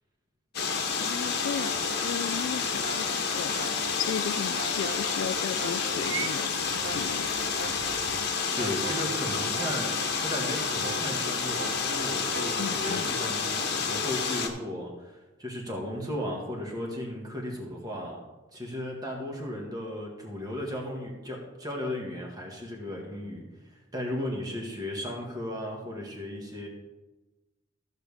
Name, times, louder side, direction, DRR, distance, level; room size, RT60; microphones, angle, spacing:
sound 1, 0.5-14.5, left 5 dB, 55° left, 1.3 m, -29 dB
voice 1, 1.0-3.7 4.0-7.5 12.6-13.1, left 7 dB, 70° left, 15 dB, 0.3 m, -35 dB
sound 2, 1.2-13.3, right 1 dB, 50° right, 0.8 m, -42 dB
Purr / Meow, 6.0-8.3, right 9 dB, 75° right, 0.5 m, -40 dB
voice 2, 8.5-18.2 18.5-26.7, left 1 dB, 20° right, -1 dB, 1.9 m, -35 dB
15.0 x 6.6 x 3.6 m, 1.1 s
head